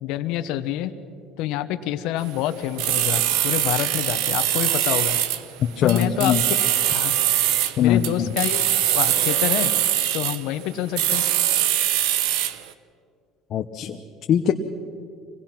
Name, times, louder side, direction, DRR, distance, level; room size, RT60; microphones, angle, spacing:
voice 1, 0.0-1.0 1.4-5.2 5.8-6.4 6.9-7.2 7.8-8.7 8.9-9.7 10.1-11.2, left 12 dB, 70° left, 10 dB, 1.1 m, -27 dB
sound 1, 2.3-12.7, right 12 dB, 80° right, 0.9 m, -22 dB
voice 2, 5.8-6.4 7.8-8.3 13.5-14.0 14.3-14.5, left 9 dB, 45° left, 5 dB, 0.8 m, -21 dB
26.0 x 18.5 x 5.9 m, 2.4 s
cardioid pair, 125°, 0 cm